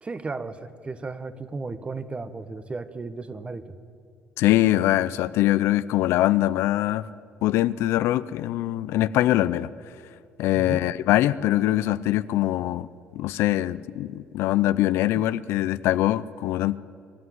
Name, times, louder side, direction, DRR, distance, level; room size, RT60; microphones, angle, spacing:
voice 1, 0.0-3.8 10.5-10.9, right 3 dB, 25° right, 12 dB, 1.3 m, -35 dB
voice 2, 4.4-7.1 7.4-9.7 10.4-12.9 13.1-16.8, left 14 dB, 80° left, 15 dB, 0.5 m, -23 dB
24.5 x 11.5 x 9.5 m, 2.4 s
supercardioid pair, 85°, 4 cm